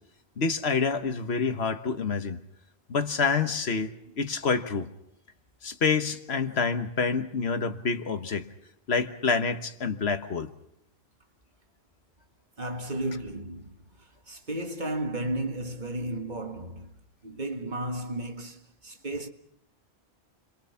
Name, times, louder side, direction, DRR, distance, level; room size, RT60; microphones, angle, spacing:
voice 1, 0.4-2.4 2.9-4.9 5.6-8.5 8.9-10.5, left 5 dB, 75° left, 1.5 m, -27 dB
voice 2, 12.6-13.7 14.3-16.9 17.2-19.3, right 1 dB, 45° right, 1.8 m, -33 dB
30.0 x 23.0 x 5.7 m
omnidirectional pair, 1.1 m